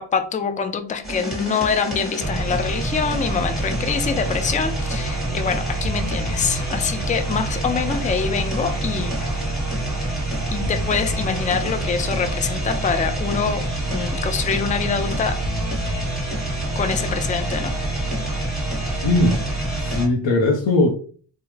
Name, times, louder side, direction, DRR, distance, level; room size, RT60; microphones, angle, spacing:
voice 1, 0.0-9.4 10.5-15.4 16.8-17.7, left 6 dB, 20° left, 8 dB, 0.3 m, -25 dB
sound 1, 1.0-20.1, right 2 dB, ahead, 1.3 m, -26 dB
voice 2, 19.0-19.4 19.8-20.9, left 2 dB, 85° left, 1 dB, 0.7 m, -19 dB
3.4 x 2.1 x 3.2 m, 0.42 s
wide cardioid pair, 90°, 43 cm